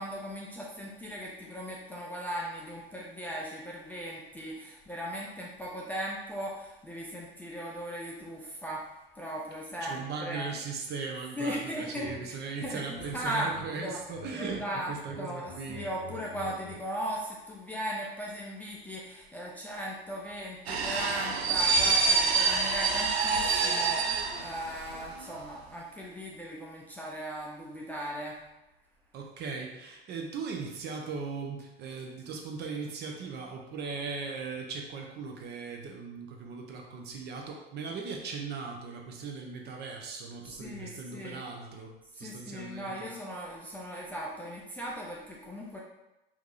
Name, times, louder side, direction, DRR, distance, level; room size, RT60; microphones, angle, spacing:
voice 1, 0.0-8.8 9.2-10.5 11.3-13.5 13.8-14.0 14.4-28.4 40.6-41.4 42.1-45.8, equal, 5° left, -5 dB, 0.4 m, -38 dB
voice 2, 9.8-15.8 29.1-43.1, right 4 dB, 35° right, 2 dB, 0.6 m, -38 dB
sound 1, 12.0-12.2 12.6-13.7 14.0-14.6 14.9-16.8, left 2 dB, 90° left, 1.1 m, -46 dB
sound 2, 20.7-25.1 25.3-25.5, right 4 dB, 85° right, 0.5 m, -27 dB
4.5 x 2.7 x 2.5 m, 0.95 s
figure-of-eight pair, 75°, 31 cm